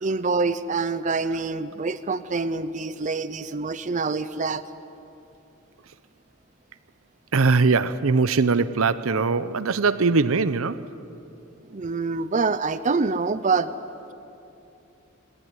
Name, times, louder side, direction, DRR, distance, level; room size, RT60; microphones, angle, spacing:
voice 1, 0.0-4.6 11.7-13.7, right 4 dB, 35° right, 0.6 m, -26 dB
voice 2, 7.3-10.8, right 4 dB, 80° right, 0.7 m, -21 dB
19.5 x 18.5 x 9.8 m
head